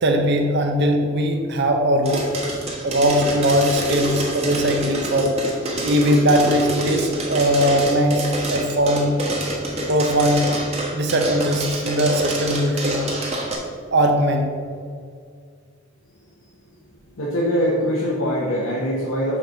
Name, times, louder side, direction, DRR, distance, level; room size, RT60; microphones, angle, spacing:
voice 1, 0.0-2.4 2.8-5.4 5.8-9.2 9.9-10.5 10.9-13.1 13.9-14.5, equal, 60° right, 3 dB, 0.7 m, -20 dB
sound 1, 2.0-13.5, right 1 dB, 30° right, 1.3 m, -27 dB
voice 2, 17.2-19.4, equal, 90° left, -5 dB, 1.1 m, -22 dB
5.7 x 4.4 x 6.3 m, 2.1 s
head